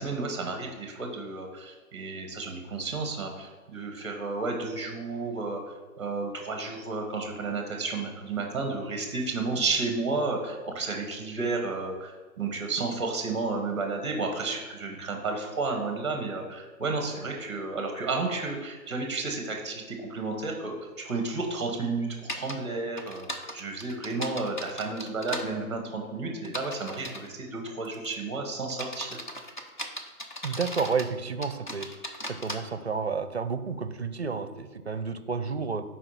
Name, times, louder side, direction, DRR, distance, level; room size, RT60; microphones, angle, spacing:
voice 1, 0.0-5.6 6.0-12.1 12.4-22.1 22.3-23.3 23.5-29.2, right 3 dB, 20° right, 3 dB, 0.9 m, -32 dB
sound 1, 22.3-22.5 23.0-25.5 26.4-27.3 27.8-28.1 28.7-31.1 31.4-32.6, equal, 35° left, 0.6 m, -37 dB
voice 2, 30.4-31.9 32.3-35.8, right 5 dB, 45° right, 11 dB, 0.5 m, -31 dB
5.7 x 4.9 x 5.6 m, 1.3 s
hypercardioid pair, 170°, 46 cm